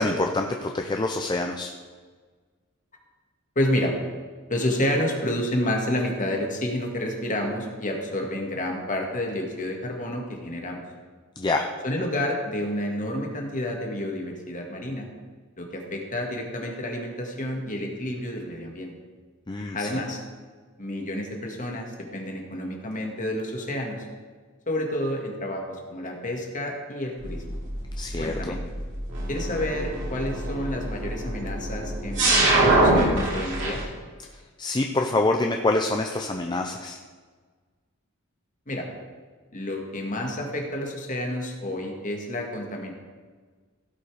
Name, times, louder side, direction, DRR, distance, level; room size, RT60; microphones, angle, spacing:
voice 1, 0.0-1.7 11.4-11.6 19.5-20.0 28.0-28.6 34.6-37.0, left 2 dB, 20° left, 3 dB, 0.6 m, -26 dB
voice 2, 3.6-3.9 4.5-10.8 11.8-15.1 15.6-18.9 19.7-20.2 20.8-24.1 24.7-27.6 28.2-28.6 29.3-33.8 38.7-38.9 39.5-42.9, left 1 dB, 40° left, 1 dB, 1.9 m, -29 dB
sound 1, 27.2-33.8, right 2 dB, 65° right, 3.1 m, -25 dB
16.0 x 5.6 x 4.9 m, 1.5 s
head